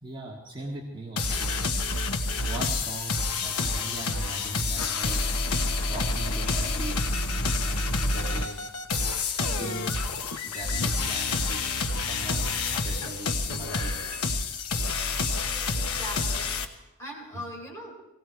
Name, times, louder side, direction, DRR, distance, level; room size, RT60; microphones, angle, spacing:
voice 1, 0.0-1.6 1.8-5.3 5.9-8.6 9.5-11.6 11.9-14.2, right 2 dB, 20° right, -2 dB, 1.8 m, -40 dB
sound 1, 1.2-16.6, left 3 dB, 90° left, 1.2 m, -28 dB
sound 2, 7.1-7.3 7.8-7.9 8.4-8.5 8.9-9.0 9.4-9.6 10.0-10.1 10.5-10.7 11.1-11.2 11.6-11.8 12.2-12.3 12.7-12.9 13.3-13.4 14.1-14.3 14.7-14.8 15.3-15.4, left 3 dB, 35° left, 3.3 m, -47 dB
voice 2, 15.5-16.6 17.0-18.0, equal, 15° left, -2 dB, 4.2 m, -40 dB
18.0 x 17.5 x 4.6 m, 0.97 s
head